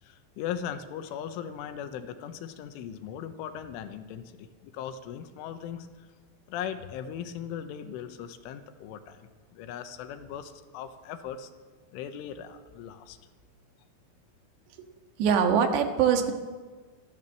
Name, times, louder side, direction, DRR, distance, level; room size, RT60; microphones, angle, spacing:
voice 1, 0.0-6.1 6.5-11.5 11.9-13.2, left 9 dB, 85° left, 9 dB, 3.6 m, -39 dB
voice 2, 15.2-16.3, right 7 dB, 65° right, 6 dB, 3.5 m, -23 dB
26.0 x 13.5 x 7.4 m, 1.4 s
omnidirectional pair, 5.7 m